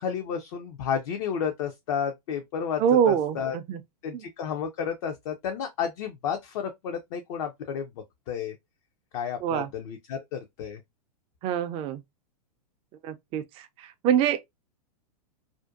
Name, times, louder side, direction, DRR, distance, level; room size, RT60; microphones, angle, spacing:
voice 1, 0.0-3.6 4.0-7.9 8.3-8.6 9.1-10.8, left 7 dB, 55° left, 0.5 m, -31 dB
voice 2, 2.8-3.8 4.1-4.2 9.4-9.7 11.4-12.0 13.0-14.4, right 9 dB, 30° right, 0.3 m, -25 dB
2.5 x 2.1 x 2.4 m
hypercardioid pair, 110°, 20 cm